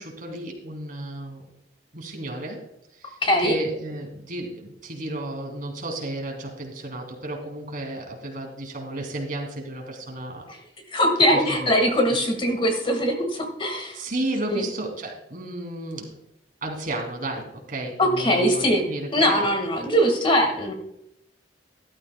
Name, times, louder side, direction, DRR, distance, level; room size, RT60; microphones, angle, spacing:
voice 1, 0.0-1.5 1.9-2.6 2.9-10.4 11.3-11.7 13.9-16.1 16.6-19.5, right 1 dB, 50° right, 1 dB, 2.8 m, -33 dB
voice 2, 3.2-3.6 10.5-10.6 10.9-14.0 14.5-14.6 18.0-18.8 19.1-20.7, equal, 30° left, 4 dB, 1.7 m, -21 dB
13.5 x 13.0 x 2.2 m, 0.80 s
head